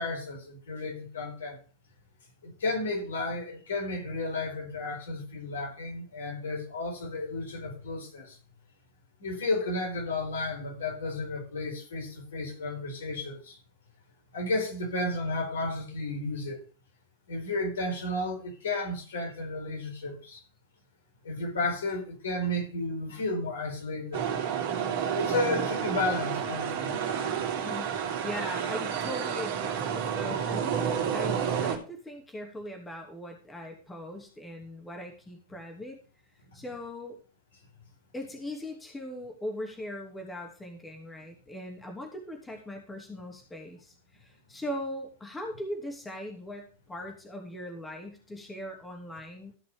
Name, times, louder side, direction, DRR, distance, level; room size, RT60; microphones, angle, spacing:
voice 1, 0.0-1.6 2.4-8.4 9.2-13.6 14.3-16.6 17.3-20.4 21.2-24.3 25.1-27.0, left 2 dB, 65° left, 4.6 m, -33 dB
sound 1, 24.1-31.8, right 7 dB, 50° right, 3.2 m, -30 dB
voice 2, 27.6-30.9 31.1-36.0 36.5-37.2 38.1-49.5, left 1 dB, 10° left, 2.8 m, -40 dB
15.0 x 6.0 x 5.3 m
figure-of-eight pair, 90°, 0 cm